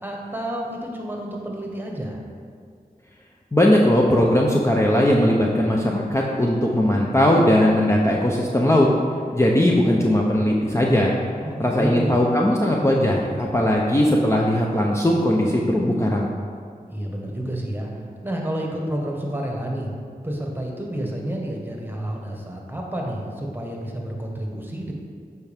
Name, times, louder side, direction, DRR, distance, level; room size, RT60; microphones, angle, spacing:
voice 1, 0.0-2.2 11.4-12.2 16.9-19.9 20.2-24.9, right 1 dB, 15° right, -1 dB, 1.4 m, -30 dB
voice 2, 3.5-8.9 9.3-11.1 11.6-16.3, left 1 dB, 20° left, -2 dB, 0.7 m, -19 dB
8.1 x 4.6 x 3.5 m, 2.1 s
cardioid pair, 45°, 15 cm